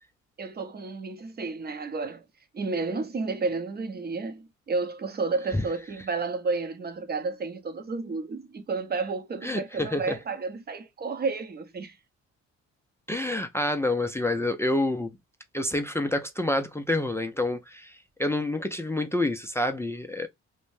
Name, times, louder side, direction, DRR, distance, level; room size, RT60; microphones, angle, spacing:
voice 1, 0.4-2.2 2.5-12.0, right 4 dB, 30° right, 0.7 m, -31 dB
voice 2, 9.4-10.1 13.1-15.1 15.5-17.9 18.2-20.3, left 1 dB, 10° left, 0.4 m, -28 dB
2.6 x 2.1 x 3.1 m
cardioid pair, 90°, 30 cm